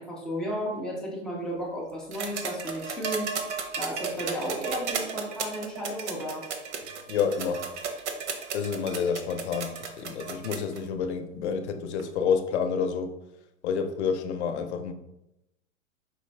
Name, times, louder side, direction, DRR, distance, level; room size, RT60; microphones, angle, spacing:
voice 1, 0.0-3.4 3.8-6.5, equal, ahead, -4 dB, 0.3 m, -33 dB
sound 1, 2.1-10.8 12.0-12.1, right 6 dB, 60° right, 0.9 m, -34 dB
voice 2, 7.1-7.7 8.5-13.2 13.6-14.9, left 6 dB, 60° left, 8 dB, 0.7 m, -29 dB
5.1 x 3.1 x 3.2 m, 0.90 s
hypercardioid pair, 120°, 39 cm